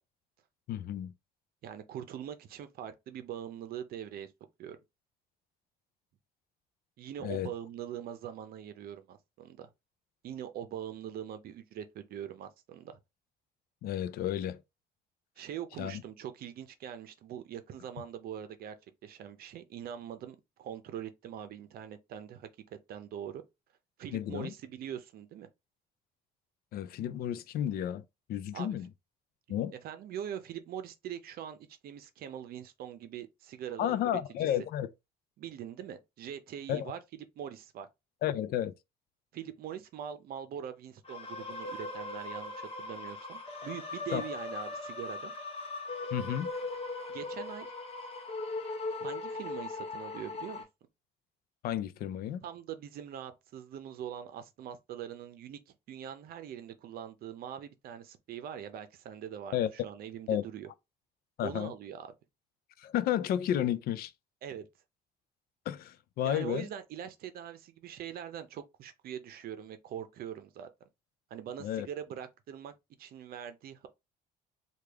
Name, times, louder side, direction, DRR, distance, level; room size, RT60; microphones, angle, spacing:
voice 1, 0.7-1.1 7.2-7.5 13.8-14.6 15.8-16.0 24.1-24.5 26.7-28.0 28.3-28.9 29.5-29.7 33.8-34.9 36.7-36.9 38.2-38.7 44.1-44.2 46.1-46.5 51.6-52.4 59.5-59.7 60.3-60.4 61.4-61.7 62.8-64.1 65.7-66.7 71.6-71.9, left 11 dB, 65° left, 0.4 m, -32 dB
voice 2, 1.6-4.3 4.6-4.8 7.0-9.7 10.2-13.0 15.4-18.7 19.0-22.5 22.9-23.4 24.0-25.5 28.5-28.7 29.5-31.6 31.8-34.5 35.4-37.0 37.4-37.9 39.3-45.3 47.1-47.7 49.0-50.7 52.4-55.6 55.9-60.7 61.4-62.1 64.4-64.7 66.2-70.7 71.3-73.9, right 9 dB, 65° right, 0.6 m, -42 dB
sound 1, 41.1-50.6, left 3 dB, 35° left, 0.8 m, -39 dB
3.3 x 2.4 x 3.4 m
cardioid pair, 110°, 17 cm